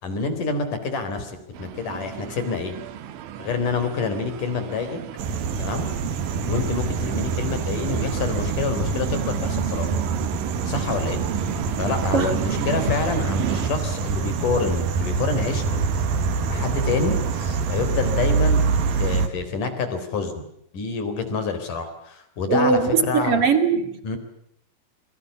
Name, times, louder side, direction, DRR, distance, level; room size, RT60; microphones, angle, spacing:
voice 1, 0.0-2.7 3.4-5.0 5.6-5.9 6.4-9.9 10.6-11.2 11.7-15.8 16.5-18.6 19.0-20.4 20.7-23.4 24.0-24.2, left 4 dB, 45° left, 9 dB, 5.1 m, -27 dB
sound 1, 1.5-13.7, right 10 dB, 75° right, 3.9 m, -34 dB
sound 2, 5.2-19.3, right 5 dB, 55° right, 3.2 m, -25 dB
voice 2, 12.1-12.7 22.5-23.9, right 5 dB, 40° right, 8 dB, 2.5 m, -21 dB
27.5 x 24.5 x 7.2 m, 0.73 s
omnidirectional pair, 5.6 m